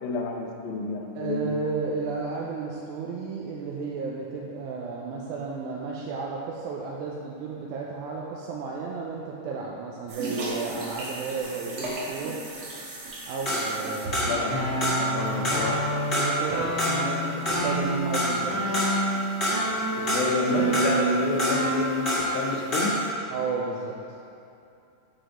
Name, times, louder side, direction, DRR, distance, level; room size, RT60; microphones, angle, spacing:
voice 1, 0.0-1.5 14.2-14.6 15.0-16.0 20.0-23.0, left 3 dB, 75° left, 1 dB, 2.1 m, -29 dB
voice 2, 1.2-12.4 13.3-14.2 16.1-18.8 23.3-24.2, right 4 dB, 80° right, -3 dB, 2.0 m, -33 dB
sound 1, 10.1-15.9, right 2 dB, 60° right, 1.6 m, -36 dB
sound 2, 13.5-14.5 14.8-15.7 16.1-19.1 19.4-20.4 20.7-22.4 22.7-23.1, equal, 30° left, 1.2 m, -27 dB
sound 3, 14.5-22.4, right 1 dB, 15° right, 0.6 m, -29 dB
7.7 x 5.1 x 4.9 m, 2.7 s
omnidirectional pair, 3.7 m